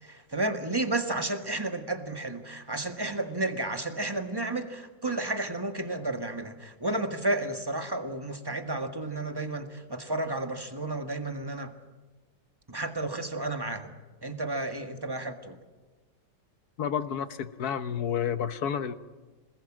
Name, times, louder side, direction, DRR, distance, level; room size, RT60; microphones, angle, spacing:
voice 1, 0.0-11.7 12.7-13.9 14.2-15.6, right 2 dB, 15° right, 6 dB, 1.6 m, -32 dB
voice 2, 16.8-18.9, left 8 dB, 60° left, 11 dB, 1.5 m, -30 dB
27.0 x 20.5 x 7.5 m, 1.3 s
omnidirectional pair, 2.0 m